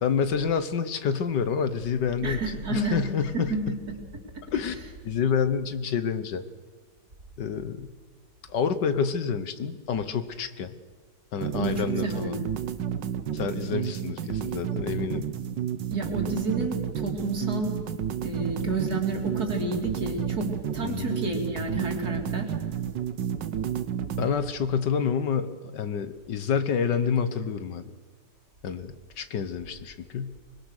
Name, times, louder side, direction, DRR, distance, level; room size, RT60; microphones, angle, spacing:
voice 1, 0.0-2.4 2.7-3.7 4.5-4.8 5.0-6.4 7.4-7.9 8.5-10.7 11.3-12.4 13.3-15.3 20.8-21.1 24.2-27.8 28.6-30.4, left 6 dB, 80° left, 11 dB, 1.9 m, -28 dB
voice 2, 2.2-3.0 3.3-3.8 11.5-12.5 15.9-17.8 18.2-20.5 20.7-22.5, right 3 dB, 60° right, 2 dB, 3.7 m, -30 dB
sound 1, 11.4-24.3, right 9 dB, 85° right, 1.7 m, -31 dB
24.5 x 21.5 x 6.6 m, 1.5 s
omnidirectional pair, 1.9 m